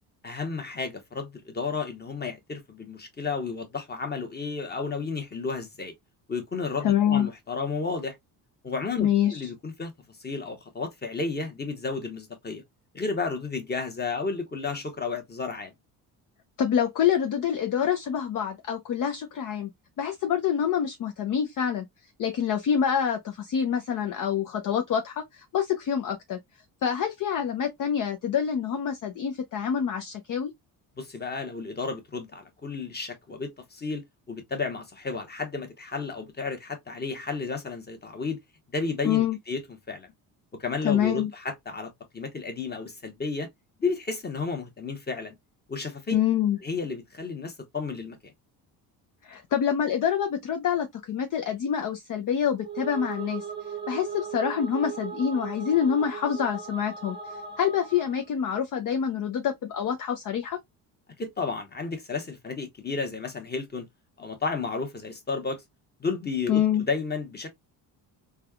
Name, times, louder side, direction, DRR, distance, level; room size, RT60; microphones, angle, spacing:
voice 1, 0.2-5.9 6.3-8.2 8.6-9.9 10.2-12.6 12.9-15.7 31.0-38.4 38.7-39.6 39.9-40.1 40.6-43.5 43.8-45.3 45.7-46.2 46.6-48.3 61.2-63.9 64.2-65.6 66.0-67.5, left 4 dB, 20° left, 1.1 m, -32 dB
voice 2, 6.8-7.3 9.0-9.5 16.6-19.7 20.0-21.9 22.2-26.4 26.8-30.5 39.0-39.4 40.8-41.3 46.1-46.6 49.2-53.4 53.9-60.6 66.5-66.8, left 8 dB, 45° left, 0.6 m, -26 dB
sound 1, 52.5-58.3, right 6 dB, 10° right, 0.8 m, -38 dB
3.3 x 2.4 x 2.2 m
supercardioid pair, 70°, 45 cm